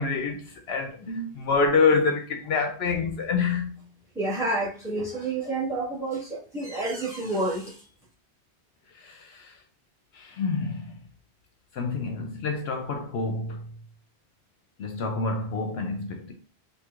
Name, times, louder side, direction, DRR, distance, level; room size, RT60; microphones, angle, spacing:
voice 1, 0.0-3.8 8.9-9.5 10.1-11.0 11.7-13.6 14.8-16.3, left 4 dB, 70° left, 0.8 m, -27 dB
voice 2, 4.1-7.8, right 2 dB, 5° right, 1.5 m, -29 dB
4.4 x 2.7 x 2.4 m
omnidirectional pair, 1.1 m